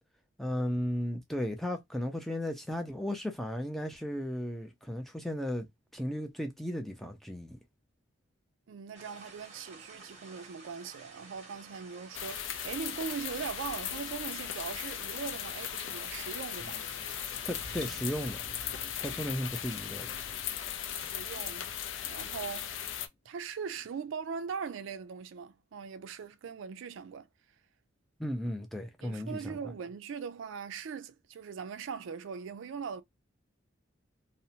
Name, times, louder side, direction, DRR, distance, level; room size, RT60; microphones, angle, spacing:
voice 1, 0.4-5.7 5.9-7.6 17.5-18.4 19.0-20.2 28.2-29.6, equal, ahead, 0.3 m, -35 dB
voice 2, 8.7-16.8 20.8-21.7 22.1-22.7 23.3-27.3 29.0-33.0, right 6 dB, 75° right, 0.3 m, -40 dB
sound 1, 8.9-18.4, right 3 dB, 35° right, 0.7 m, -52 dB
sound 2, 12.1-23.1, left 9 dB, 70° left, 0.4 m, -38 dB
sound 3, 15.5-23.0 23.3-23.4, left 1 dB, 30° left, 0.7 m, -54 dB
2.7 x 2.0 x 2.7 m
head